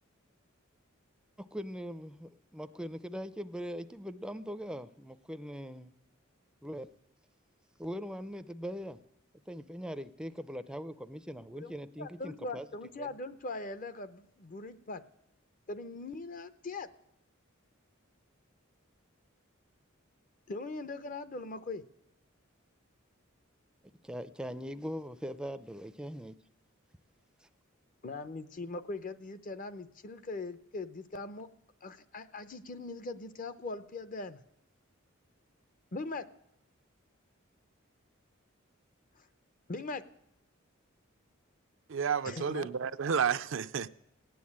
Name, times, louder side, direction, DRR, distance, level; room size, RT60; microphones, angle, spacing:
voice 1, 1.5-5.9 6.6-6.9 7.8-9.0 9.5-12.7 13.0-13.1 24.0-26.4, equal, 5° right, 0.5 m, -41 dB
voice 2, 12.0-15.0 15.7-16.9 20.5-21.8 28.0-31.5 31.8-34.4 35.9-36.3 39.2-39.3 39.7-40.0 42.2-42.7, left 3 dB, 40° left, 0.7 m, -40 dB
voice 3, 41.9-43.9, right 7 dB, 65° right, 0.5 m, -31 dB
17.0 x 9.4 x 8.6 m
head